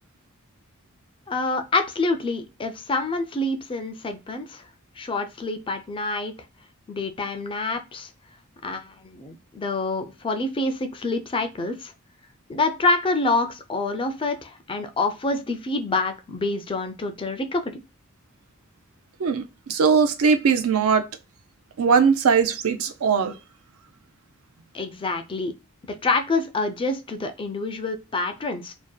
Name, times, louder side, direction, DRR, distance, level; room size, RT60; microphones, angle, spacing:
voice 1, 1.3-4.6 5.0-6.3 6.9-8.1 8.6-11.9 12.5-17.8 24.7-25.5 26.0-28.7, left 3 dB, 25° left, 0.4 m, -27 dB
voice 2, 19.2-21.1 21.8-23.4, right 5 dB, 70° right, 0.4 m, -20 dB
2.6 x 2.1 x 2.2 m
head